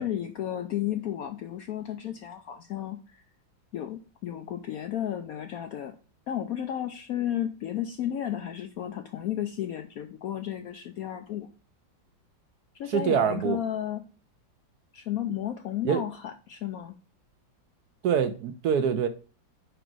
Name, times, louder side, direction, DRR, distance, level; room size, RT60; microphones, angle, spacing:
voice 1, 0.0-3.2 3.7-6.0 6.3-11.5 12.7-14.0 14.9-17.0, left 11 dB, 70° left, 0.8 m, -33 dB
voice 2, 12.9-13.6 15.8-16.0 18.0-19.1, right 7 dB, 65° right, 1.0 m, -25 dB
5.1 x 5.0 x 6.0 m
omnidirectional pair, 2.0 m